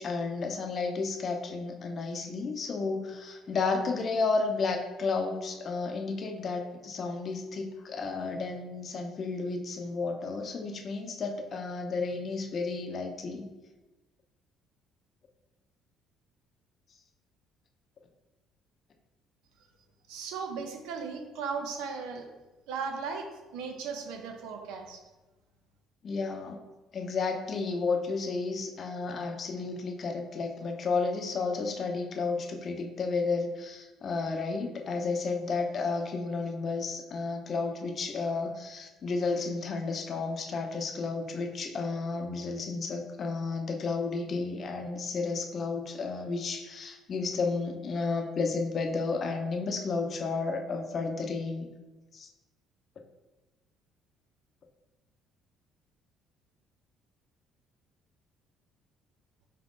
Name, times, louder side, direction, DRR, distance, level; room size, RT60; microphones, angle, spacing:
voice 1, 0.0-13.5 26.0-26.6 26.9-51.7 52.1-52.3, left 4 dB, 50° left, 3 dB, 0.6 m, -32 dB
voice 2, 20.1-22.3 22.7-25.0, right 5 dB, 80° right, 4 dB, 0.5 m, -37 dB
4.5 x 2.5 x 3.6 m, 1.1 s
supercardioid pair, 75°, 0 cm